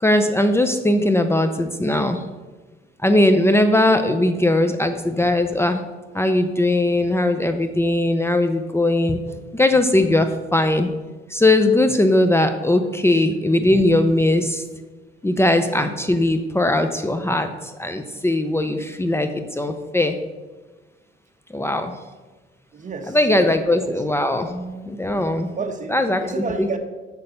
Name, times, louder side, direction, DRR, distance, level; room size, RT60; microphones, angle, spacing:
voice 1, 0.0-2.2 3.0-5.8 6.1-9.2 9.5-10.9 11.3-14.6 15.2-17.5 17.8-20.2 21.5-21.9 23.1-25.5 25.9-26.2 26.6-26.7, left 1 dB, 10° left, 7 dB, 0.6 m, -19 dB
voice 2, 22.7-23.9 25.6-25.9 26.2-26.8, right 4 dB, 40° right, 7 dB, 1.1 m, -31 dB
6.9 x 6.6 x 6.7 m, 1.3 s
cardioid pair, 90°, 20 cm